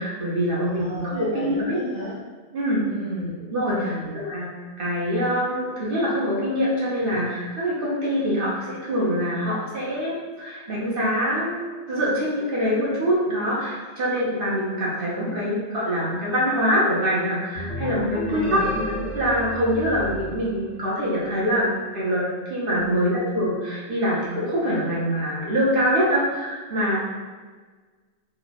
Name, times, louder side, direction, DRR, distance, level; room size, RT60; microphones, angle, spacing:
voice 1, 0.0-1.8 2.5-2.9 3.5-4.5 4.8-22.2 22.5-27.0, equal, 55° right, -6 dB, 0.9 m, -24 dB
voice 2, 0.6-2.1 2.9-3.3 3.7-4.2 7.0-7.1 18.2-18.6 22.7-23.2, equal, 30° left, -9 dB, 0.7 m, -33 dB
sound 1, 17.5-21.3, left 1 dB, 85° left, 1.0 m, -33 dB
3.1 x 2.2 x 4.0 m, 1.4 s
omnidirectional pair, 1.2 m